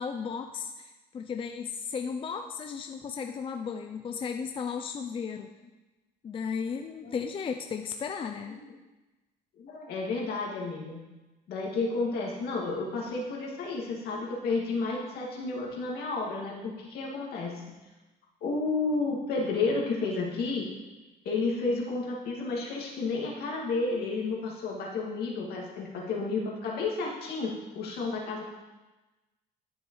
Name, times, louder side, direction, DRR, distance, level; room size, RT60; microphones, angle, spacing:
voice 1, 0.0-5.5 6.2-8.6, left 6 dB, 30° left, 5 dB, 0.5 m, -35 dB
voice 2, 9.6-11.0 11.5-17.6 18.4-20.7 21.2-28.4, left 3 dB, 70° left, -3 dB, 2.3 m, -31 dB
12.0 x 6.4 x 3.2 m, 1.1 s
cardioid pair, 110°, 17 cm